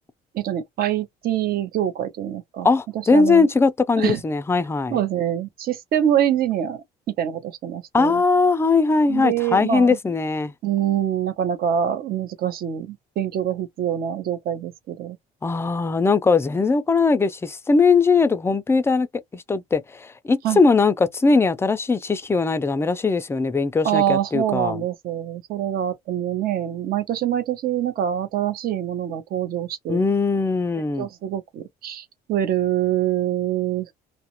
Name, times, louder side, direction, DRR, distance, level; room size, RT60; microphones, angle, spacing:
voice 1, 0.3-2.7 3.1-3.5 4.0-4.2 4.9-6.8 7.2-8.2 9.1-10.0 10.6-15.2 20.4-20.6 23.8-30.1 31.0-33.9, right 10 dB, 60° right, 0.7 m, -25 dB
voice 2, 2.6-5.0 7.9-10.5 15.4-19.1 19.3-24.8 29.9-31.1, left 4 dB, 15° left, 0.3 m, -20 dB
2.3 x 2.0 x 2.9 m
cardioid pair, 110°, 17 cm